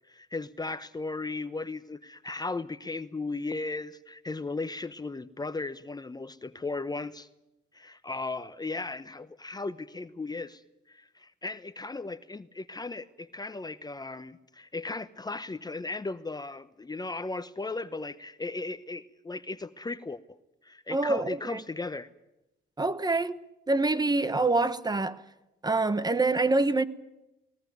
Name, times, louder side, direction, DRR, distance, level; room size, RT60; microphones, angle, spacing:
voice 1, 0.1-7.3 7.7-10.6 10.9-20.2 20.6-22.1, left 3 dB, 20° left, 0.9 m, -36 dB
voice 2, 20.9-21.6 22.8-23.4 23.7-25.2 25.6-26.8, right 3 dB, 20° right, 1.2 m, -26 dB
20.0 x 20.0 x 9.4 m
cardioid pair, 90°, 20 cm